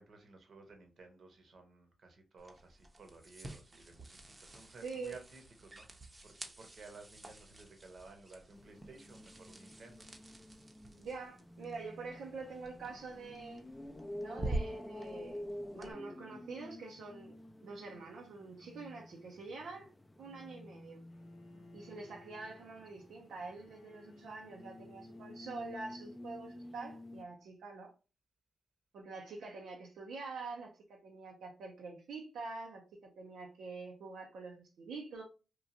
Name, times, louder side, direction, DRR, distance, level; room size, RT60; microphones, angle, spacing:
voice 1, 0.0-10.1 21.5-21.8, right 3 dB, 60° right, 0.8 m, -56 dB
sound 1, 2.4-15.9, right 2 dB, 30° right, 0.6 m, -47 dB
voice 2, 4.8-5.2 11.0-13.6 14.2-15.4 15.7-17.3 17.6-19.9 20.2-21.0 21.7-27.9 28.9-35.2, right 4 dB, 85° right, 0.5 m, -46 dB
sound 2, 8.5-27.3, left 1 dB, 10° left, 0.3 m, -50 dB
Bowed string instrument, 21.1-27.2, left 3 dB, 90° left, 0.5 m, -62 dB
2.9 x 2.3 x 2.5 m
cardioid pair, 80°, 0 cm